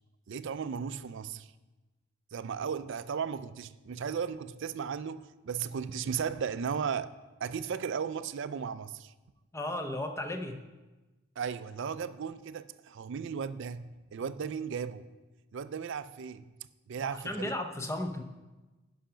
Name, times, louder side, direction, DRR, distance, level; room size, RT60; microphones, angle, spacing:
voice 1, 0.3-1.5 2.3-7.1 7.4-9.1 11.4-15.1 15.5-16.5 16.9-17.5, right 6 dB, 55° right, 0.4 m, -35 dB
voice 2, 9.5-10.6 17.0-18.2, left 1 dB, 15° left, 0.6 m, -35 dB
11.5 x 5.6 x 5.0 m
head